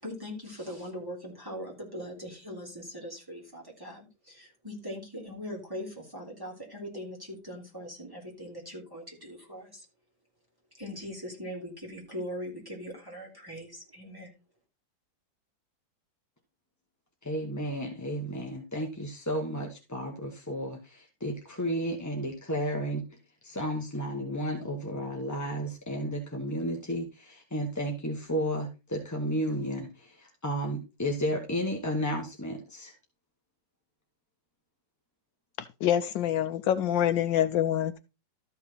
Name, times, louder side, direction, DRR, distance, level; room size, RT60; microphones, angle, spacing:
voice 1, 0.0-9.8 10.8-14.3, equal, 10° right, 3.4 m, -41 dB
voice 2, 17.2-23.1 23.4-32.9, equal, 10° left, 0.9 m, -33 dB
voice 3, 35.8-38.0, left 10 dB, 75° left, 1.3 m, -26 dB
13.0 x 5.9 x 4.0 m
omnidirectional pair, 2.1 m